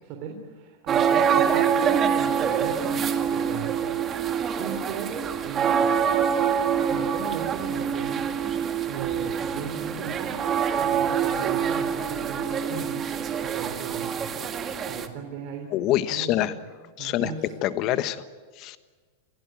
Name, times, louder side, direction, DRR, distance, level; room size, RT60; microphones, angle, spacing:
voice 1, 0.0-3.8 4.6-6.0 6.8-10.3 10.7-13.1 13.4-14.3 14.9-15.7 16.1-16.5 17.0-17.5, right 6 dB, 45° right, 3 dB, 3.3 m, -38 dB
sound 1, 0.9-15.1, right 7 dB, 25° right, 1.8 m, -25 dB
voice 2, 15.7-16.5 17.0-17.3 17.6-18.2 18.6-18.8, left 13 dB, 40° left, 12 dB, 1.3 m, -25 dB
27.5 x 16.0 x 9.0 m, 1.5 s
supercardioid pair, 140°, 0 cm